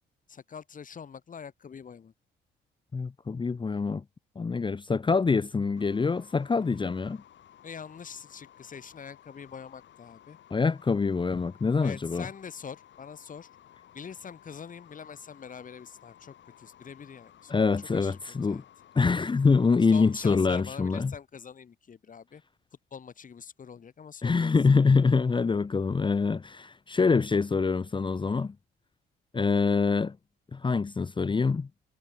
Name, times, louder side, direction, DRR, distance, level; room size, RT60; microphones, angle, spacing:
voice 1, 0.3-2.1 7.6-10.4 11.8-13.5 13.9-18.6 19.9-22.4 22.9-24.5, left 6 dB, 40° left, 2.0 m, -44 dB
voice 2, 2.9-4.0 4.4-7.2 10.5-12.3 17.5-18.6 18.9-21.1 24.2-28.5 29.3-30.2 30.5-31.7, left 4 dB, 25° left, 0.8 m, -25 dB
sound 1, 5.8-20.5, left 11 dB, 65° left, 3.1 m, -56 dB
cardioid pair, 90°, 20 cm